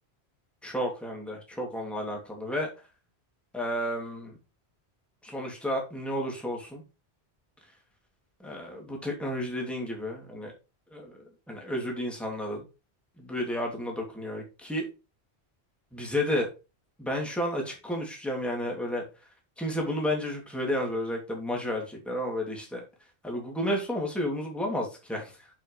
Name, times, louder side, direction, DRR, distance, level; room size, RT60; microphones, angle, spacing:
voice 1, 0.6-2.7 3.5-4.3 5.2-6.8 8.4-10.5 10.9-11.1 11.5-12.6 13.2-14.9 15.9-16.5 17.0-19.0 19.6-22.8 23.2-25.5, left 1 dB, ahead, 2.7 m, -32 dB
9.0 x 6.2 x 3.3 m
omnidirectional pair, 1.1 m